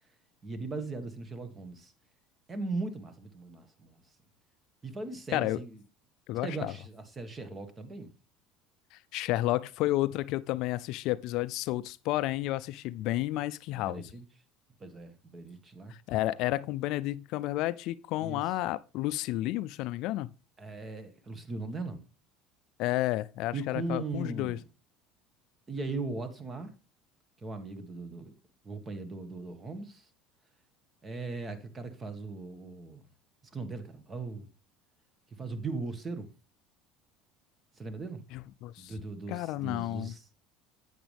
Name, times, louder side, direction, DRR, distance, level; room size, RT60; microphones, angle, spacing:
voice 1, 0.4-1.9 2.5-4.0 4.8-5.8 6.4-8.1 13.7-14.2 14.8-15.9 18.2-18.4 20.6-22.0 23.5-24.6 25.7-26.7 27.4-28.3 28.6-30.1 31.0-33.0 33.5-34.5 35.4-36.3 37.7-38.2 38.8-40.2, right 3 dB, 25° right, 1.7 m, -38 dB
voice 2, 6.3-6.7 8.9-14.0 15.9-20.3 22.8-24.6 38.3-38.9 39.3-40.1, left 16 dB, 65° left, 0.4 m, -31 dB
8.7 x 8.1 x 3.4 m
supercardioid pair, 95°, 0 cm